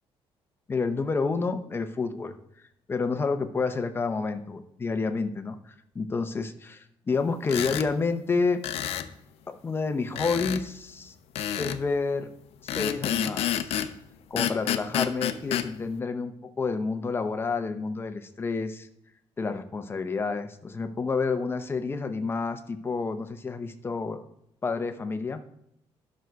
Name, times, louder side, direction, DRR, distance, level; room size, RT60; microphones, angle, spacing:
voice 1, 0.7-2.4 2.9-8.6 9.5-11.1 11.6-12.3 12.6-13.8 14.3-18.9 19.4-24.2 24.6-25.4, left 4 dB, 20° left, 8 dB, 0.8 m, -29 dB
sound 1, 7.4-7.9 8.6-9.1 10.2-10.6 11.4-11.8 12.7-13.9 14.4-15.7, left 11 dB, 75° left, 0.7 m, -29 dB
12.0 x 6.3 x 4.6 m, 0.78 s
cardioid pair, 150°, 10 cm